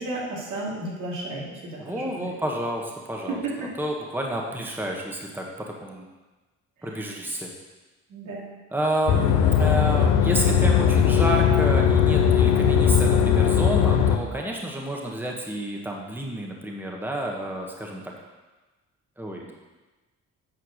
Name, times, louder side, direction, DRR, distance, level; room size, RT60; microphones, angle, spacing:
voice 1, 0.0-2.3 3.3-3.7 6.8-6.9 8.1-8.5, right 2 dB, 80° right, -5 dB, 2.9 m, -33 dB
voice 2, 1.8-5.4 5.8-6.1 6.8-7.5 8.7-18.1 19.2-19.5, right 1 dB, 5° right, 0 dB, 1.3 m, -30 dB
sound 1, 9.1-14.2, left 8 dB, 85° left, 0.8 m, -19 dB
9.2 x 4.6 x 6.4 m, 1.2 s
cardioid pair, 90°, 30 cm